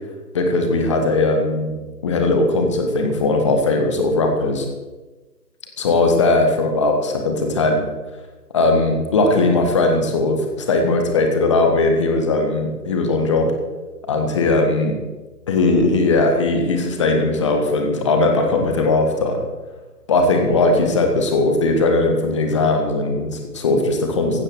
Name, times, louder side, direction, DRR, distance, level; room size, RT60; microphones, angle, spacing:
voice 1, 0.3-1.8 2.0-4.7 5.8-7.9 8.5-13.5 14.1-15.0 15.5-19.4 20.1-24.4, left 2 dB, 20° left, 3 dB, 1.8 m, -18 dB
16.0 x 11.0 x 6.3 m, 1.2 s
figure-of-eight pair, 150°, 48 cm